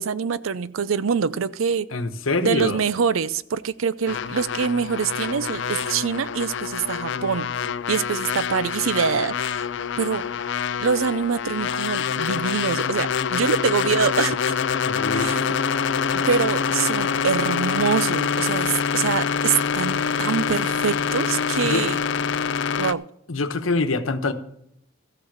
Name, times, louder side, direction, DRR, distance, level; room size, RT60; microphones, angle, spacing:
voice 1, 0.0-1.9 2.4-7.5 7.9-9.7 10.0-10.3 10.8-14.5 15.1-15.6 16.1-22.0 22.8-23.0, right 6 dB, 85° right, 17 dB, 0.5 m, -25 dB
voice 2, 1.9-2.8 14.8-15.4 21.6-21.8 23.3-24.3, left 3 dB, 85° left, 10 dB, 1.1 m, -25 dB
sound 1, 4.1-22.9, left 6 dB, 60° left, 0.4 m, -25 dB
14.0 x 6.4 x 7.2 m, 0.72 s
head